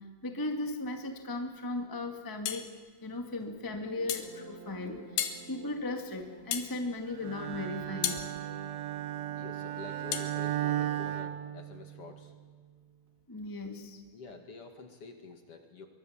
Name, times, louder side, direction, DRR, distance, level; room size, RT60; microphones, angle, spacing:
voice 1, 0.2-2.7 3.0-8.2 13.3-14.0, left 2 dB, 10° left, 4 dB, 1.0 m, -37 dB
sound 1, 2.5-2.7 4.1-4.3 5.2-5.4 6.5-6.7 8.0-8.3 10.1-10.3, left 10 dB, 80° left, 3.3 m, -32 dB
sound 2, 3.5-11.4, right 4 dB, 55° right, 4.3 m, -51 dB
Bowed string instrument, 7.2-12.2, right 12 dB, 75° right, 2.9 m, -35 dB
voice 2, 9.4-12.3 14.1-15.9, left 4 dB, 45° left, 5 dB, 2.7 m, -48 dB
24.5 x 23.5 x 7.4 m, 1.5 s
omnidirectional pair, 4.3 m